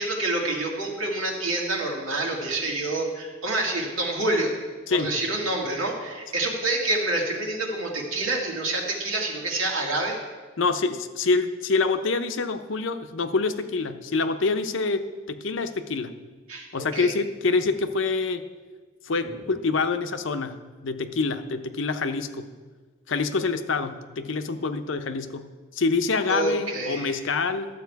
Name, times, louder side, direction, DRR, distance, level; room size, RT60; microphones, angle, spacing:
voice 1, 0.0-4.5 4.9-10.2 16.5-16.7 16.9-17.1 26.3-27.2, right 2 dB, 85° right, -1 dB, 2.0 m, -27 dB
voice 2, 10.6-16.1 16.7-18.4 19.0-20.6 20.8-22.5 23.1-27.7, left 4 dB, 65° left, 9 dB, 0.7 m, -26 dB
12.5 x 7.4 x 4.7 m, 1.4 s
head